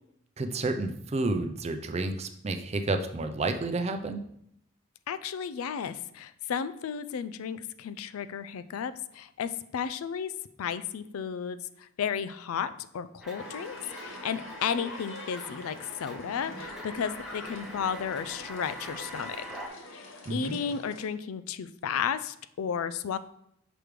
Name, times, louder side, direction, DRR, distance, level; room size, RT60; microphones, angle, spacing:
voice 1, 0.4-4.2 20.3-20.6, right 2 dB, 30° right, 7 dB, 0.4 m, -30 dB
voice 2, 5.1-10.3 10.6-13.8 14.0-19.4 19.9-23.2, left 7 dB, 85° left, 14 dB, 0.4 m, -33 dB
sound 1, 13.2-19.7, equal, 5° right, 0.8 m, -44 dB
sound 2, 13.4-21.1, left 1 dB, 65° left, 1.0 m, -45 dB
6.0 x 3.2 x 5.0 m, 0.74 s
head